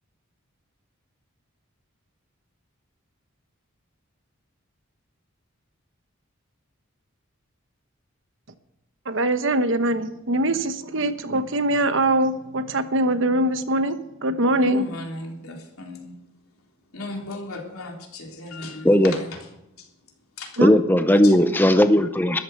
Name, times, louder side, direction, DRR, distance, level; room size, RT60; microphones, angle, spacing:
voice 1, 9.1-14.9 20.6-20.8, right 1 dB, 60° right, 10 dB, 1.1 m, -23 dB
voice 2, 14.6-16.2 16.9-19.4 19.8-19.9 20.4-20.6 21.2-21.5, left 2 dB, 85° left, 1 dB, 3.7 m, -36 dB
voice 3, 20.6-22.4, left 1 dB, 10° left, 9 dB, 0.6 m, -17 dB
13.5 x 11.5 x 6.5 m, 0.88 s
head